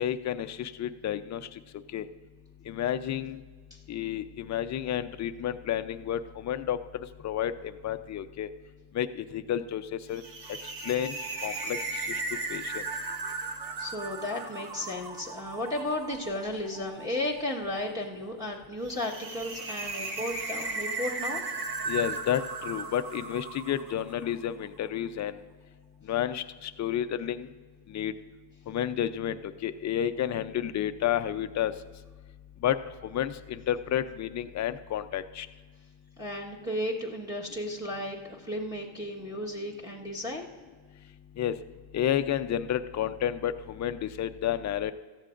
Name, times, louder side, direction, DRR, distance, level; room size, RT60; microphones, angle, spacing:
voice 1, 0.0-1.5 1.9-2.1 2.7-3.4 3.9-6.8 7.2-8.5 8.9-10.2 10.8-11.2 11.4-11.8 12.1-12.2 12.5-12.8 21.9-25.4 26.1-27.5 27.9-28.1 28.7-31.7 32.6-32.8 33.0-35.5 41.4-41.5 41.9-44.9, left 10 dB, 35° left, 10 dB, 0.6 m, -30 dB
sound 1, 10.1-24.4, right 3 dB, 50° right, 1.4 m, -37 dB
voice 2, 13.8-21.4 36.2-40.5, left 1 dB, 10° right, -3 dB, 1.4 m, -34 dB
17.5 x 14.0 x 2.6 m, 1.5 s
cardioid pair, 115°, 47 cm